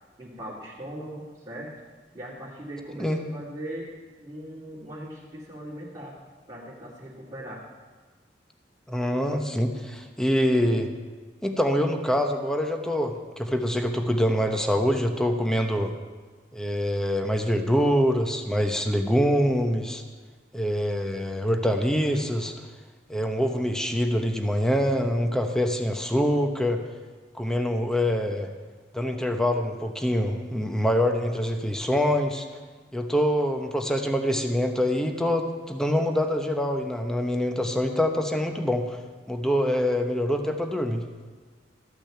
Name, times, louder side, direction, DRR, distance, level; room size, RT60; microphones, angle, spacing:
voice 1, 0.2-1.7 2.1-3.9 4.2-6.1 6.5-7.6 14.9-15.0, right 1 dB, 25° right, -8 dB, 2.3 m, -39 dB
voice 2, 8.9-10.9 11.4-15.9 16.5-20.0 20.5-22.5 23.1-26.8 27.3-28.5 28.9-32.5 32.9-39.0 39.3-41.0, equal, 5° left, 4 dB, 0.9 m, -25 dB
13.5 x 6.1 x 8.7 m, 1.4 s
head